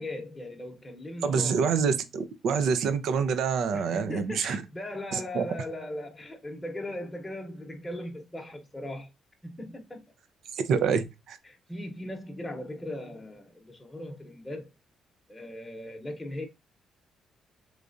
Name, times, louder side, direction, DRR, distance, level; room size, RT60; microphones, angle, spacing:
voice 1, 0.0-1.6 3.7-9.1 9.4-10.0 11.4-14.7 15.3-16.5, left 1 dB, 15° left, 0.9 m, -38 dB
voice 2, 1.2-4.6 5.1-5.4 10.5-11.4, right 6 dB, 75° right, 0.5 m, -26 dB
3.5 x 3.2 x 2.5 m
cardioid pair, 90°, 0 cm